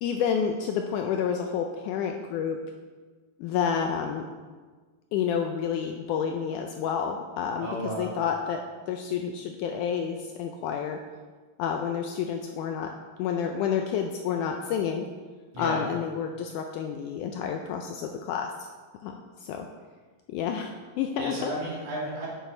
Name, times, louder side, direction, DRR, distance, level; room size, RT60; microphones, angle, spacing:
voice 1, 0.0-2.6 3.4-4.3 5.1-7.7 8.0-11.0 11.6-12.9 13.2-15.1 15.6-18.7 19.0-19.1 19.4-19.7 20.3-20.7 21.0-21.5, left 7 dB, 80° left, 4 dB, 1.9 m, -29 dB
voice 2, 7.6-8.1 15.5-15.8 21.2-22.3, right 1 dB, 60° right, -6 dB, 3.7 m, -33 dB
9.3 x 6.9 x 4.3 m, 1.4 s
omnidirectional pair, 4.0 m